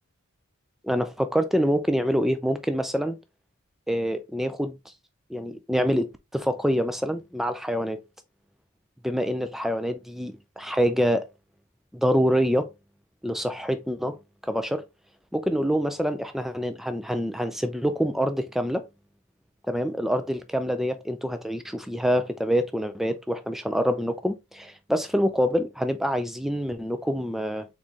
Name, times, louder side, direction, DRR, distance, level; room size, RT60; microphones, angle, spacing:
voice 1, 0.8-3.2 3.9-4.8 5.3-8.0 9.0-11.3 11.9-12.7 13.2-14.2 14.4-14.8 15.3-18.8 19.7-27.7, equal, ahead, 0.4 m, -26 dB
4.0 x 3.7 x 3.0 m
head